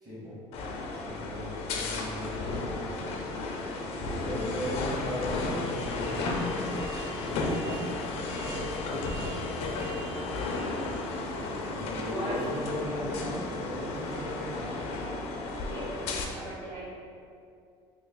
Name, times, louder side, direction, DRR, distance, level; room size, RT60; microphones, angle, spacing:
voice 1, 0.0-0.4 1.0-2.8 3.9-6.4 7.1-7.6 8.0-8.7 9.1-9.5 11.6-14.8, equal, 35° right, -8 dB, 1.5 m, -38 dB
sound 1, 0.5-16.2, left 2 dB, 65° left, 0.5 m, -33 dB
voice 2, 10.0-10.5 12.0-12.9 15.6-16.9, right 1 dB, 55° right, -10 dB, 0.9 m, -39 dB
3.0 x 2.5 x 3.8 m, 2.4 s
supercardioid pair, 95°, 11 cm